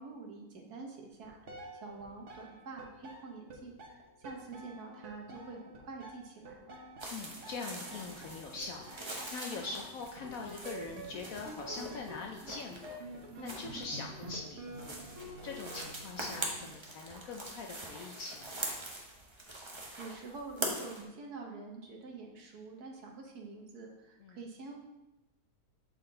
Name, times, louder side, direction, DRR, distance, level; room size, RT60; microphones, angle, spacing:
voice 1, 0.0-1.4 1.7-3.8 4.2-6.7 20.0-24.8, right 4 dB, 65° right, 0 dB, 1.4 m, -46 dB
sound 1, 1.1-16.7, right 1 dB, 50° right, 1.2 m, -48 dB
sound 2, 7.0-21.0, right 1 dB, 30° right, 0.5 m, -43 dB
voice 2, 7.1-13.0 13.4-15.0 15.4-18.8 24.2-24.4, left 4 dB, 65° left, 1 dB, 0.9 m, -43 dB
7.6 x 4.2 x 3.8 m, 0.98 s
omnidirectional pair, 1.9 m